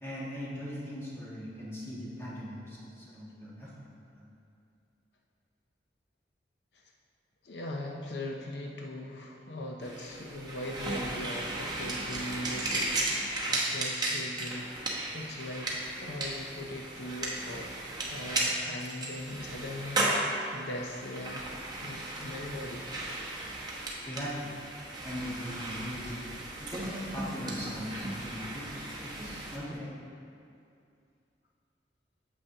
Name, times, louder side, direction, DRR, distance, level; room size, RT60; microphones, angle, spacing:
voice 1, 0.0-4.3 24.1-24.5 25.0-26.2 26.7-30.0, equal, 15° left, -8 dB, 1.5 m, -40 dB
voice 2, 7.4-17.7 18.1-21.5 21.8-22.9, left 1 dB, 70° left, 0 dB, 0.6 m, -40 dB
sound 1, 9.8-29.6, right 2 dB, 25° right, 0.9 m, -35 dB
8.6 x 7.1 x 2.8 m, 2.4 s
head